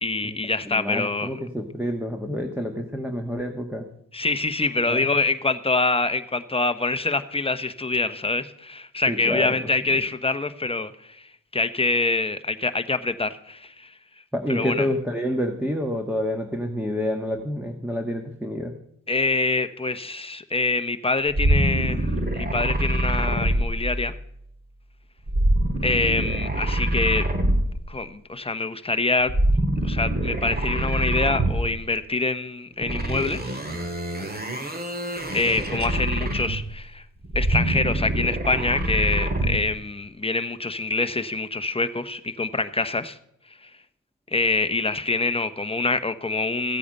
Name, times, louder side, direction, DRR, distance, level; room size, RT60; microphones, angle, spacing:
voice 1, 0.0-1.3 4.1-11.2 11.5-13.9 14.5-14.9 19.1-24.1 25.8-27.3 27.9-29.3 29.8-33.6 35.3-37.0 37.3-43.2 44.3-46.8, left 3 dB, 15° left, 10 dB, 1.0 m, -25 dB
voice 2, 0.6-3.8 4.8-5.1 9.1-10.0 14.3-18.7, equal, 5° right, 3 dB, 1.5 m, -28 dB
sound 1, 21.3-24.3 25.3-28.0 29.2-31.9 32.8-36.8 37.2-39.7, right 1 dB, 30° right, 2.1 m, -25 dB
15.0 x 8.4 x 5.4 m, 0.75 s
cardioid pair, 60°, 32 cm